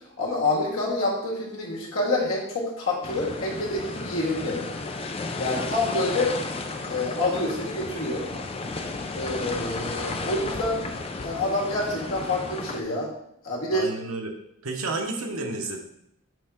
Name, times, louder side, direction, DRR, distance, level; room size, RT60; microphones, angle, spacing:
voice 1, 0.2-4.6 5.4-6.4 6.8-8.3 9.1-10.8 11.2-13.1 13.4-13.9, left 2 dB, 85° left, -3 dB, 1.9 m, -27 dB
sound 1, 3.0-12.8, left 3 dB, 25° left, 0.4 m, -33 dB
voice 2, 13.7-14.3 14.6-15.8, right 3 dB, 85° right, 2 dB, 1.1 m, -31 dB
6.3 x 5.5 x 3.6 m, 0.77 s
head